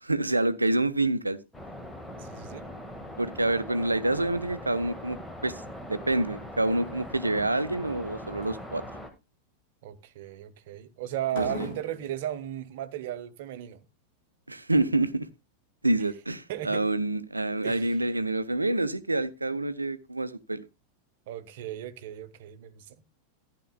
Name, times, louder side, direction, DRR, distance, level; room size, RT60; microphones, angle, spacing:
voice 1, 0.0-1.4 3.2-5.6 5.9-8.8 11.3-11.7 14.5-15.3 15.8-20.6, right 2 dB, 80° right, 0.7 m, -27 dB
sound 1, 1.5-9.1, left 1 dB, 5° left, 1.6 m, -41 dB
voice 2, 2.2-2.7 9.8-13.8 16.5-16.8 17.6-18.1 21.3-23.0, right 11 dB, 55° right, 0.9 m, -36 dB
sound 2, 5.8-6.2 6.5-7.0 7.6-8.0 8.4-8.6 11.3-12.1, left 1 dB, 55° left, 4.4 m, -39 dB
14.0 x 10.0 x 2.2 m
figure-of-eight pair, 90°, 0 cm